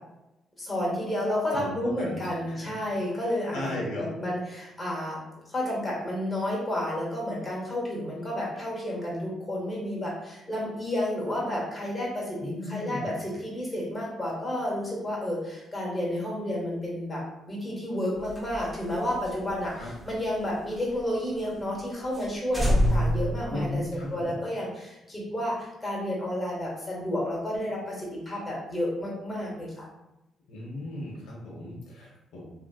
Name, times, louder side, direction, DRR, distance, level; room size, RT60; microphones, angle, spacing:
voice 1, 0.6-29.9, left 1 dB, 15° left, -4 dB, 1.3 m, -31 dB
voice 2, 1.5-2.7 3.1-3.2 3.5-4.1 12.4-13.2 19.7-19.9 23.5-24.4 30.5-32.5, left 1 dB, 85° left, -3 dB, 0.8 m, -36 dB
sound 1, 18.2-21.0 21.4-21.5 21.8-21.9 22.1-22.3 22.5-24.2, equal, 5° right, 0.8 m, -28 dB
2.9 x 2.8 x 2.3 m, 0.92 s
cardioid pair, 90°, 0 cm